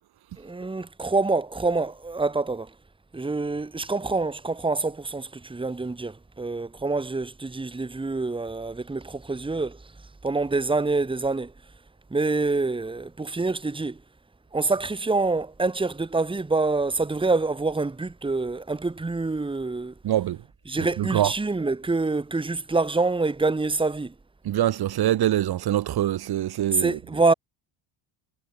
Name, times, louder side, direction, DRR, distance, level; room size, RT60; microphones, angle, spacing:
voice 1, 0.4-2.7 3.1-9.8 10.2-11.5 12.1-14.0 14.5-19.9 20.7-24.1 26.7-27.3, right 3 dB, 10° right, 2.8 m, -26 dB
voice 2, 20.0-20.4 21.0-21.3 24.4-27.0, right 12 dB, 50° right, 2.6 m, -24 dB
cardioid pair, 155°, 49 cm